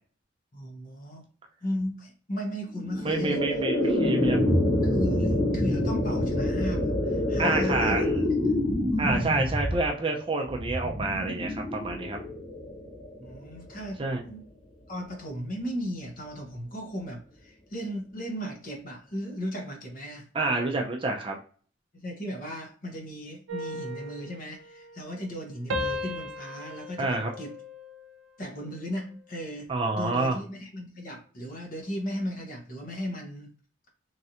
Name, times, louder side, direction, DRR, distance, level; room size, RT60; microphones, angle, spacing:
voice 1, 0.5-1.3 1.6-3.4 3.8-3.9 4.8-8.0 8.4-8.6 8.9-9.5 13.2-14.4 14.9-20.3 21.9-27.5 28.4-29.7 30.0-33.5, equal, 45° left, 1 dB, 0.9 m, -36 dB
sound 1, 2.7-13.9, left 1 dB, 80° left, 1.3 m, -27 dB
voice 2, 3.0-4.4 7.4-8.1 9.0-12.2 14.0-14.2 20.3-21.4 27.0-27.3 29.7-30.4, right 2 dB, 25° right, 1 dB, 0.4 m, -28 dB
sound 2, 23.5-25.4 25.7-28.3 28.7-29.1, left 1 dB, 80° right, 0.6 m, -37 dB
3.2 x 2.5 x 2.7 m, 0.43 s
head